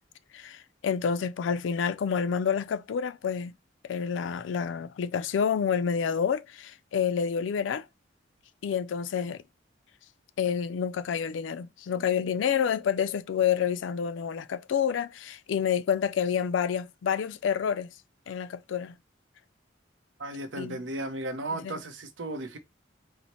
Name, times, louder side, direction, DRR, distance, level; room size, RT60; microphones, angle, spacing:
voice 1, 0.3-3.5 3.8-7.8 8.6-9.4 10.4-17.9 18.3-19.0 20.6-20.8 21.5-21.8, left 7 dB, 85° left, 0.3 m, -28 dB
voice 2, 20.2-22.6, right 1 dB, 80° right, 0.6 m, -35 dB
4.1 x 2.0 x 2.9 m
head